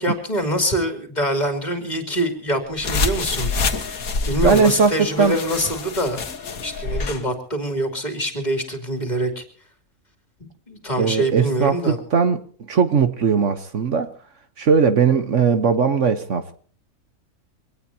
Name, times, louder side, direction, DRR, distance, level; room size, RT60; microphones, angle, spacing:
voice 1, 0.0-3.5 4.3-6.2 6.6-9.4 10.4-12.0, right 1 dB, 30° left, 5 dB, 3.1 m, -24 dB
sound 1, 2.8-7.2, left 3 dB, 80° left, 1.9 m, -26 dB
voice 2, 4.4-5.3 11.0-14.1 14.6-16.6, right 6 dB, 60° right, 9 dB, 1.4 m, -19 dB
24.0 x 18.5 x 2.8 m, 0.44 s
omnidirectional pair, 1.5 m